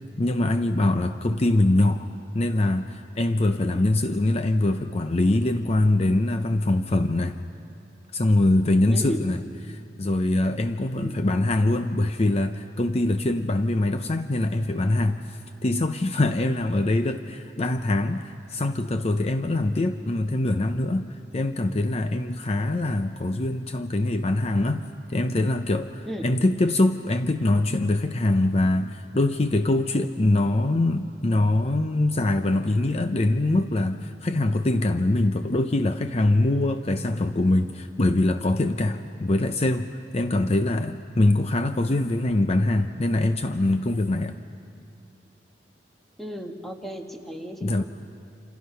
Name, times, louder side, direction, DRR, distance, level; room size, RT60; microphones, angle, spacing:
voice 1, 0.2-2.1 2.3-7.4 8.1-9.4 9.7-24.8 25.1-44.4 47.6-47.8, left 2 dB, 35° left, 8 dB, 0.6 m, -23 dB
voice 2, 8.9-9.3 11.0-11.1 26.0-26.3 46.2-47.8, equal, ahead, 2 dB, 1.5 m, -35 dB
28.0 x 27.5 x 5.7 m, 2.6 s
head